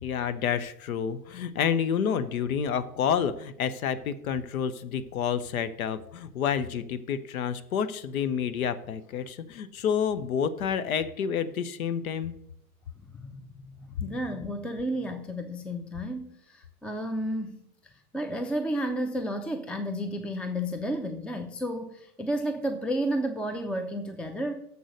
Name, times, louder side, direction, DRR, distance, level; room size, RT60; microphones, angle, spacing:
voice 1, 0.0-12.3, left 7 dB, 70° left, 13 dB, 0.8 m, -29 dB
voice 2, 13.2-24.5, equal, 5° left, 7 dB, 0.5 m, -32 dB
7.0 x 6.2 x 6.4 m, 0.73 s
figure-of-eight pair, 90°, 45 cm